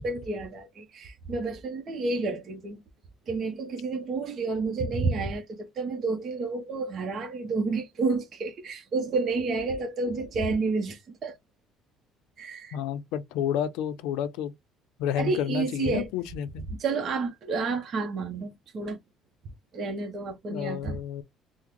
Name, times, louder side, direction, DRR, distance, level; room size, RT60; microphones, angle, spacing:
voice 1, 0.0-2.8 3.3-11.4 12.4-12.8 15.2-16.1 16.7-19.0 19.7-21.0, right 3 dB, 45° right, 0.8 m, -30 dB
voice 2, 12.7-14.5 15.0-16.6 20.5-21.2, left 9 dB, 85° left, 0.5 m, -30 dB
3.6 x 2.1 x 3.1 m
cardioid pair, 105°, 0 cm